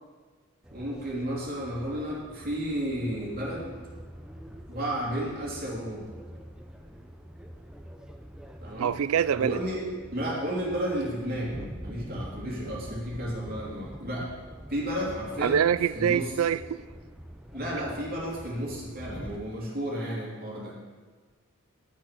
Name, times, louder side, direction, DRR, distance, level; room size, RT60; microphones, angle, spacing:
sound 1, 0.6-19.4, equal, 5° right, 0.6 m, -45 dB
voice 1, 0.7-3.7 4.7-6.1 8.6-8.9 9.3-9.8 10.1-14.3 14.7-15.6 15.9-16.3 17.5-20.8, equal, 45° right, 2.9 m, -32 dB
voice 2, 8.8-9.6 15.4-16.8, right 8 dB, 70° right, 0.4 m, -25 dB
11.0 x 6.3 x 6.1 m
head